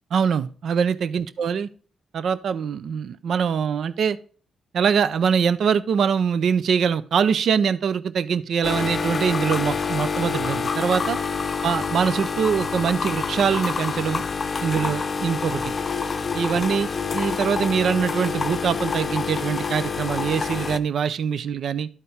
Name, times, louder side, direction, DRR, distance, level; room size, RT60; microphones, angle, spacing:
voice 1, 0.1-1.7 2.1-4.2 4.7-11.2 11.6-14.2 14.6-15.7 16.3-21.9, right 7 dB, 70° right, 0.4 m, -23 dB
sound 1, 8.6-20.8, left 5 dB, 45° left, 0.6 m, -27 dB
12.0 x 4.3 x 3.4 m
cardioid pair, 70°, 0 cm